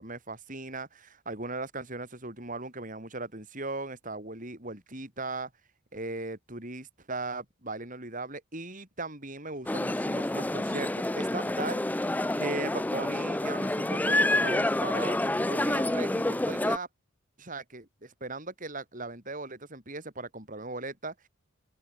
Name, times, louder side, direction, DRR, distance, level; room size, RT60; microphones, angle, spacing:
voice 1, 0.0-5.5 5.9-16.9 17.4-21.3, right 2 dB, 40° right, 5.6 m, -38 dB
sound 1, 9.7-16.8, left 1 dB, 10° left, 0.4 m, -28 dB
head